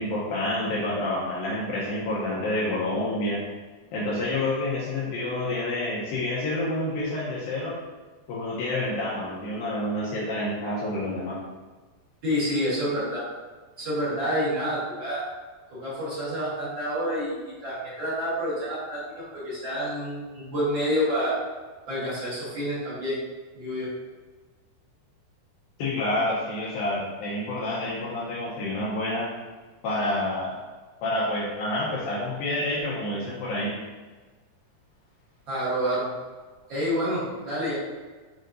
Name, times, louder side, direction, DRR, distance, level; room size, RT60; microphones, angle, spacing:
voice 1, 0.0-3.4 3.9-7.8 8.3-11.4 25.8-29.3 29.8-30.6 31.0-33.7, left 1 dB, 80° left, -6 dB, 2.2 m, -28 dB
voice 2, 12.2-13.2 13.8-15.2 15.7-21.4 21.9-23.2 23.5-23.9 35.5-36.1 36.7-37.7, equal, 85° right, -12 dB, 1.0 m, -28 dB
7.6 x 2.8 x 2.5 m, 1.4 s
omnidirectional pair, 4.7 m